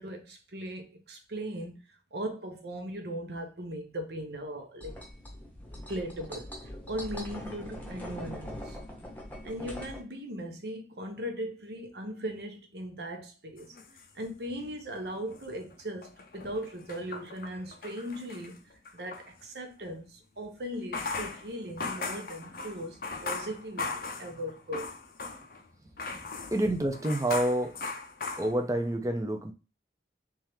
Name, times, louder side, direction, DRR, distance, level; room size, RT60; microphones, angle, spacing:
voice 1, 0.0-1.8 2.1-5.0 5.9-6.5 6.9-8.8 9.4-13.8 14.1-18.6 18.9-24.9, equal, 70° right, 0.9 m, -38 dB
sound 1, 4.8-10.0, equal, 10° left, 0.8 m, -42 dB
sound 2, 13.6-14.8 15.1-19.3 20.7-25.6 26.0-28.9, left 4 dB, 50° left, 0.5 m, -39 dB
voice 2, 26.1-27.8 28.4-29.5, right 1 dB, 20° right, 0.5 m, -28 dB
3.6 x 3.2 x 3.1 m
head